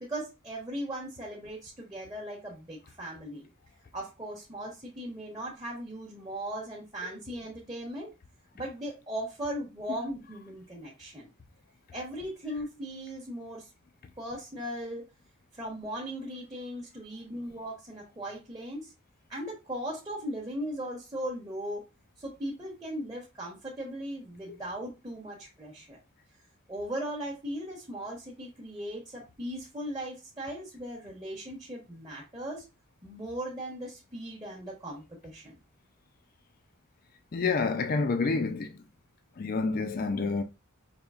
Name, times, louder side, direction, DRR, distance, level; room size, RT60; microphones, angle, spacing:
voice 1, 0.0-3.5 3.9-8.1 8.5-11.3 11.9-13.7 14.2-15.1 15.5-18.9 19.3-21.8 22.2-26.0 26.7-32.7 33.0-35.6, equal, 20° right, 0.9 m, -38 dB
voice 2, 37.3-38.8 39.4-40.4, left 4 dB, 40° left, 0.4 m, -28 dB
5.1 x 2.9 x 2.3 m
head